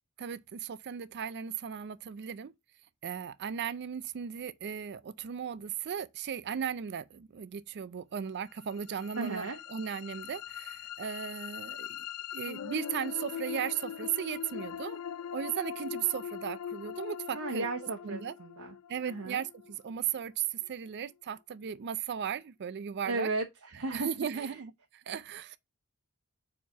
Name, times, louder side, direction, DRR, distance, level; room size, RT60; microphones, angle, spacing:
voice 1, 0.2-2.5 3.0-12.1 12.3-15.0 15.3-17.7 18.0-18.4 18.9-23.3 23.9-25.6, right 8 dB, 50° right, 0.4 m, -36 dB
sound 1, 8.6-20.7, left 9 dB, 80° left, 0.4 m, -41 dB
voice 2, 9.2-9.6 17.3-18.7 19.0-19.4 23.1-24.5, right 3 dB, 70° right, 1.0 m, -35 dB
4.7 x 4.3 x 5.5 m
head